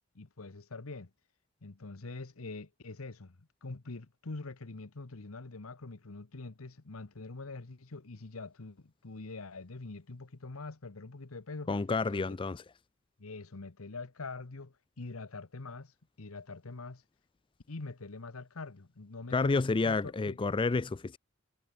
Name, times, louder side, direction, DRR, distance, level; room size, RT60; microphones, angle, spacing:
voice 1, 0.1-1.1 1.6-11.7 12.1-12.4 13.2-17.0 17.7-20.4, left 3 dB, 85° left, 1.1 m, -44 dB
voice 2, 11.7-12.6 19.3-21.2, left 3 dB, 25° left, 0.4 m, -30 dB
head